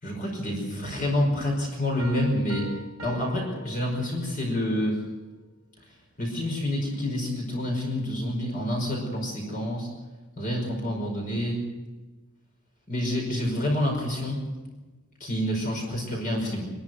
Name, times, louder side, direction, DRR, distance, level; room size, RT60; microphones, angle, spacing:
voice 1, 0.0-2.7 3.0-5.0 6.2-9.9 10.4-11.6 12.9-14.4 15.2-16.7, left 1 dB, 40° left, -1 dB, 5.3 m, -28 dB
Piano, 2.0-4.5, right 1 dB, 70° right, 2.0 m, -42 dB
25.5 x 12.5 x 9.5 m, 1.2 s
head